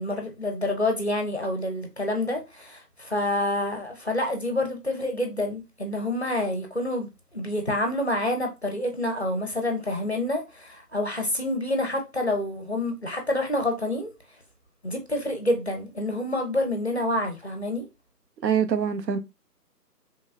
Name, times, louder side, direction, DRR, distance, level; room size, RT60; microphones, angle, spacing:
voice 1, 0.0-14.1 14.8-17.9, left 1 dB, 45° left, 0.5 m, -28 dB
voice 2, 18.4-19.2, right 7 dB, 85° right, 0.6 m, -24 dB
3.0 x 2.2 x 2.3 m
figure-of-eight pair, 165°, 49 cm